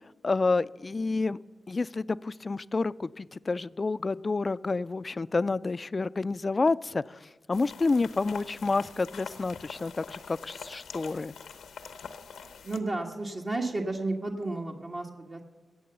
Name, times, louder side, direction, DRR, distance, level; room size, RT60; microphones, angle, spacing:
voice 1, 0.2-1.4 1.7-11.3, left 3 dB, 45° left, 17 dB, 0.4 m, -29 dB
sound 1, 7.5-12.8, left 6 dB, 90° left, 0.8 m, -45 dB
voice 2, 12.6-15.4, right 2 dB, 50° right, -1 dB, 1.5 m, -32 dB
18.0 x 7.0 x 6.8 m, 1.4 s
cardioid pair, 45°, 0 cm